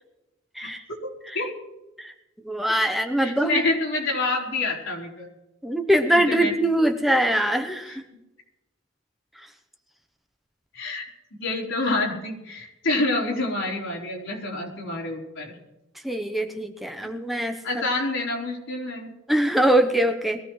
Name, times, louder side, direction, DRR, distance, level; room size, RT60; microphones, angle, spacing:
voice 1, 2.4-3.6 5.6-8.0 9.4-9.5 16.0-17.8 19.3-20.4, right 1 dB, ahead, 5 dB, 0.8 m, -23 dB
voice 2, 3.2-5.3 6.2-6.5 10.7-11.1 11.3-15.6 17.6-19.1, left 2 dB, 80° left, -3 dB, 4.1 m, -27 dB
22.0 x 15.0 x 3.2 m, 0.96 s
head